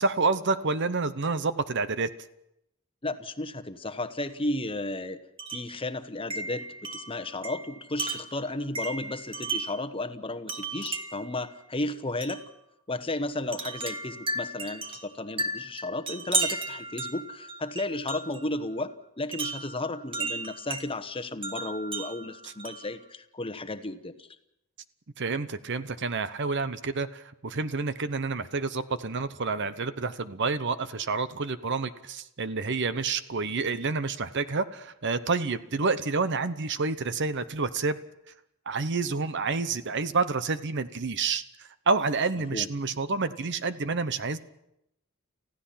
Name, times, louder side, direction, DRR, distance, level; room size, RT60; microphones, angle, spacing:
voice 1, 0.0-2.1 25.2-38.0 38.7-44.4, right 4 dB, 55° right, 13 dB, 0.9 m, -29 dB
voice 2, 3.0-5.2 5.5-12.4 12.9-24.3 42.5-42.7, left 2 dB, 25° left, 10 dB, 1.1 m, -34 dB
Wind chime, 5.4-5.8 6.3-9.9 10.5-11.3 12.2-12.5 13.5-18.5 19.3-20.9 21.4-23.0, right 3 dB, 25° right, 1.6 m, -34 dB
30.0 x 15.5 x 5.8 m, 0.82 s
head